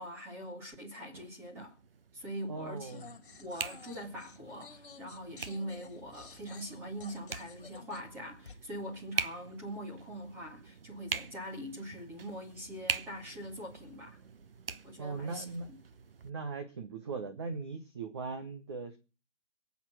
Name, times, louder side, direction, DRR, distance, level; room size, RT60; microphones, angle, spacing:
voice 1, 0.0-1.8 2.1-3.0 3.4-14.2 14.8-15.5, equal, 5° right, 2.0 m, -43 dB
sound 1, 1.1-16.3, right 5 dB, 50° right, 1.0 m, -43 dB
voice 2, 2.5-3.1 15.0-15.7 16.2-19.0, right 4 dB, 25° right, 1.0 m, -39 dB
sound 2, 2.9-8.6, left 6 dB, 45° left, 2.4 m, -53 dB
22.0 x 8.2 x 6.1 m
hypercardioid pair, 165°, 36 cm